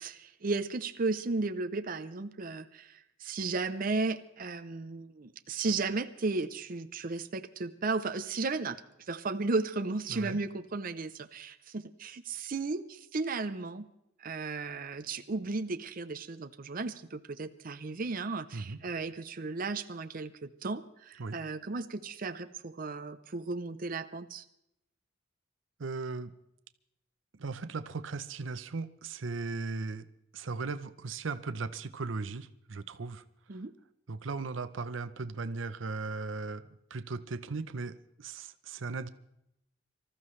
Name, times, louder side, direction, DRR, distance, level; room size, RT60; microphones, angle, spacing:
voice 1, 0.0-8.8 9.1-13.9 14.2-24.4 33.5-33.7, right 3 dB, 45° right, 9 dB, 0.6 m, -35 dB
voice 2, 25.8-26.3 27.3-30.1 30.3-33.2 34.1-39.1, right 4 dB, 85° right, 12 dB, 0.7 m, -37 dB
25.5 x 14.0 x 3.2 m, 0.81 s
head